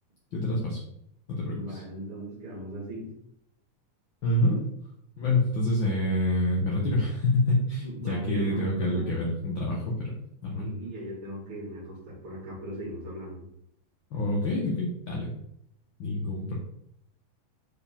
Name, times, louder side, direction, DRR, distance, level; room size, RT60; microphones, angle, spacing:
voice 1, 0.3-0.8 1.3-1.8 4.2-4.6 5.2-10.1 10.4-10.7 14.1-15.3 16.0-16.6, left 1 dB, 55° left, -3 dB, 1.4 m, -27 dB
voice 2, 1.5-3.1 7.8-9.2 10.6-13.4, right 1 dB, 50° right, -5 dB, 2.7 m, -39 dB
8.6 x 4.8 x 3.6 m, 0.76 s
omnidirectional pair, 3.5 m